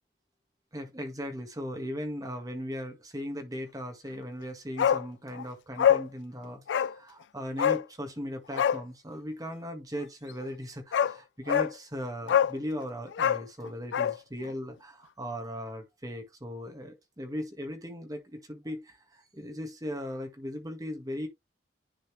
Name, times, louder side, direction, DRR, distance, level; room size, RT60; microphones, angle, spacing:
voice 1, 0.7-21.3, equal, 20° right, 1.6 m, -38 dB
Bark, 4.8-5.1 5.3-5.4 5.8-6.1 6.7-6.9 7.6-7.8 8.5-8.8 10.4-10.5 10.9-11.1 11.5-11.7 12.3-12.6 13.1-14.2 14.4-14.5, left 9 dB, 80° left, 0.3 m, -24 dB
10.0 x 4.2 x 3.2 m
head